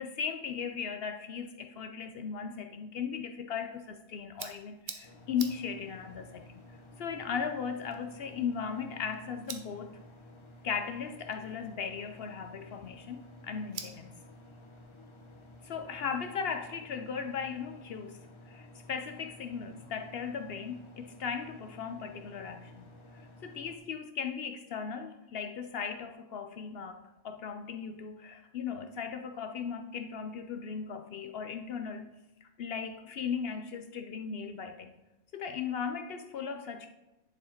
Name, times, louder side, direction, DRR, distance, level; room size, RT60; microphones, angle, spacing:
voice 1, 0.0-6.7 7.0-10.0 10.6-14.2 15.6-18.2 18.5-32.1 32.4-34.9 35.3-36.9, left 6 dB, 60° left, 7 dB, 0.7 m, -37 dB
sound 1, 3.7-16.0, right 6 dB, 45° right, 0.8 m, -51 dB
sound 2, 5.0-23.8, left 1 dB, 30° left, 0.7 m, -53 dB
10.5 x 4.7 x 4.4 m, 0.98 s
omnidirectional pair, 1.3 m